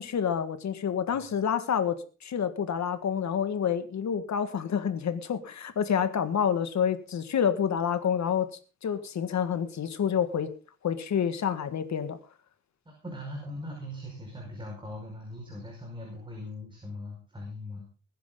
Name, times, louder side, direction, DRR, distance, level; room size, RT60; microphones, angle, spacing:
voice 1, 0.0-8.5 8.8-10.5 10.8-12.2, left 8 dB, 70° left, 10 dB, 1.8 m, -28 dB
voice 2, 12.9-17.9, left 1 dB, 15° right, -1 dB, 5.2 m, -40 dB
20.5 x 10.5 x 3.9 m, 0.36 s
wide cardioid pair, 140°, 30 cm